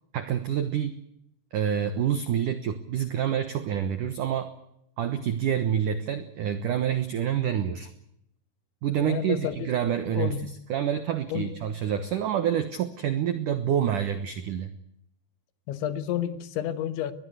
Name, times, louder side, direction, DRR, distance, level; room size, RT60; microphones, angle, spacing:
voice 1, 0.1-0.9 1.5-4.5 5.0-7.9 8.8-14.7, right 9 dB, 85° right, 10 dB, 1.8 m, -27 dB
voice 2, 9.0-9.7 10.2-10.5 11.3-11.5 15.7-17.1, left 11 dB, 75° left, 12 dB, 3.5 m, -30 dB
22.5 x 20.5 x 8.1 m, 0.77 s
omnidirectional pair, 5.6 m